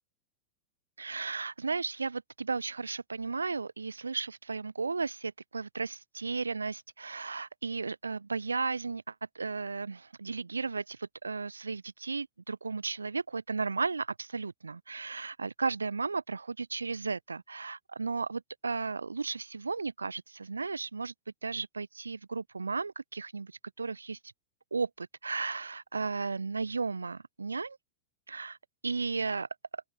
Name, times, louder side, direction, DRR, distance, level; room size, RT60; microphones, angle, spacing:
voice 1, 1.0-21.1 21.4-24.2 24.7-27.8 28.3-28.6 28.8-29.8, right 4 dB, 75° right, 7.5 m, -35 dB
open air
figure-of-eight pair, 90°, 0 cm